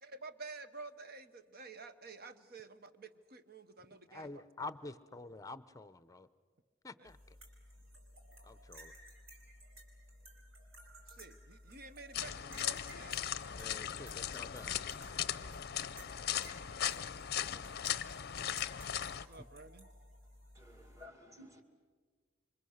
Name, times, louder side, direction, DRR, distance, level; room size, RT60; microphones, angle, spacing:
voice 1, 0.0-4.4 7.0-7.1 11.1-13.2 19.2-19.9, right 3 dB, 50° right, 10 dB, 1.1 m, -50 dB
voice 2, 4.1-6.3 6.8-7.4 8.4-8.9 13.6-14.7, left 3 dB, 15° left, 14 dB, 0.7 m, -48 dB
sound 1, 7.0-21.1, equal, 85° right, 4.9 m, -56 dB
sound 2, 12.1-19.3, left 10 dB, 50° left, 0.6 m, -38 dB
voice 3, 20.5-21.6, left 1 dB, 15° right, 5 dB, 2.3 m, -55 dB
27.5 x 25.0 x 6.5 m, 1.5 s
head